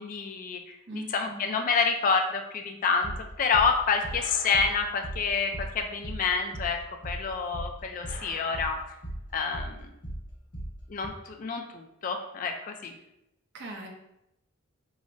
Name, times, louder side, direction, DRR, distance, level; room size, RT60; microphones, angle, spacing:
voice 1, 0.0-3.1 3.4-6.8 7.0-8.8 9.3-9.8 10.9-12.9, left 5 dB, 40° left, 4 dB, 0.3 m, -28 dB
voice 2, 0.9-1.4 13.5-13.9, right 1 dB, 55° right, 1 dB, 0.6 m, -40 dB
sound 1, 3.0-11.1, right 1 dB, 60° left, 1.2 m, -38 dB
4.9 x 2.0 x 2.5 m, 0.86 s
head